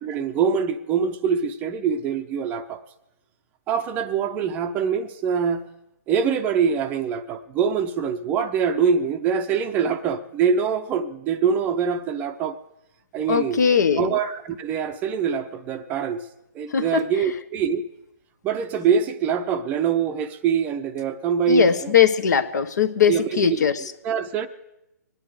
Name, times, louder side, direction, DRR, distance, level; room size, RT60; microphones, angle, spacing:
voice 1, 0.0-2.8 3.7-5.6 6.1-12.6 13.1-13.6 14.0-16.3 16.5-17.8 18.4-21.9 23.1-23.7 24.0-24.5, right 6 dB, 15° right, 0.6 m, -24 dB
voice 2, 13.3-14.1 16.7-17.0 21.5-23.9, left 7 dB, 65° left, 1.2 m, -20 dB
24.5 x 10.0 x 4.9 m
hypercardioid pair, 155°, 10 cm